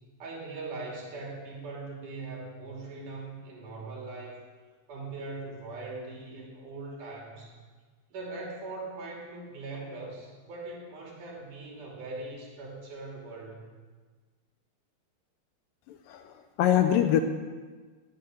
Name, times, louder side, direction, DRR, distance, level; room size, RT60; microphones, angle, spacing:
voice 1, 0.2-4.4 4.9-7.5 8.1-13.8, right 3 dB, 60° right, -1 dB, 4.2 m, -40 dB
voice 2, 15.9-17.2, left 10 dB, 75° left, 8 dB, 2.2 m, -24 dB
18.0 x 9.5 x 6.4 m, 1.4 s
omnidirectional pair, 4.3 m